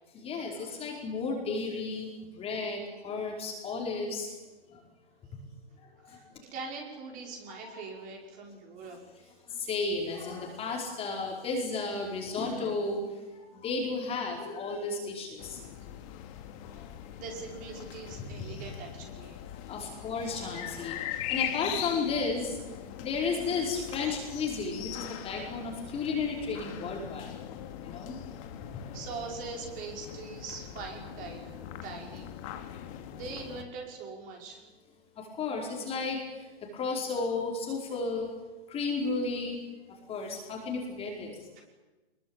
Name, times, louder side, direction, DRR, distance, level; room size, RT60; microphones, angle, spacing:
voice 1, 0.1-4.3 4.7-4.8 6.1-6.2 7.6-7.7 9.6-13.1 13.6-15.6 16.8-16.9 19.7-22.6 23.0-27.3 27.8-28.2 35.2-36.2 36.7-38.3 38.7-39.6 40.1-41.3, left 4 dB, 20° left, 0 dB, 4.9 m, -33 dB
voice 2, 6.5-9.0 16.7-19.4 20.2-20.3 21.1-21.3 28.9-32.7 33.1-34.6 41.6-41.7, right 4 dB, 25° right, 1 dB, 5.5 m, -42 dB
sound 1, 15.4-33.6, left 11 dB, 35° left, 2.5 m, -41 dB
24.0 x 22.0 x 9.0 m, 1.2 s
hypercardioid pair, 135°, 31 cm